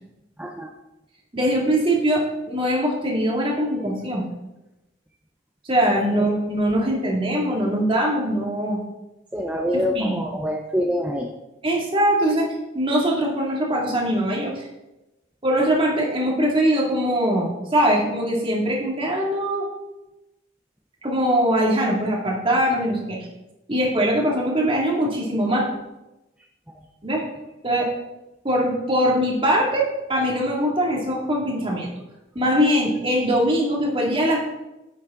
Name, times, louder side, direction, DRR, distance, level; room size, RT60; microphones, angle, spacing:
voice 1, 0.4-0.7 6.1-6.3 9.3-11.3, equal, 5° right, 1 dB, 0.6 m, -25 dB
voice 2, 1.3-4.2 5.6-8.8 9.9-10.2 11.6-12.5 12.7-14.7 15.4-19.6 21.0-23.2 23.7-25.7 27.0-27.2 27.6-27.9 28.4-31.9 32.3-34.4, equal, 25° right, -2 dB, 2.3 m, -22 dB
10.0 x 8.3 x 3.8 m, 0.99 s
head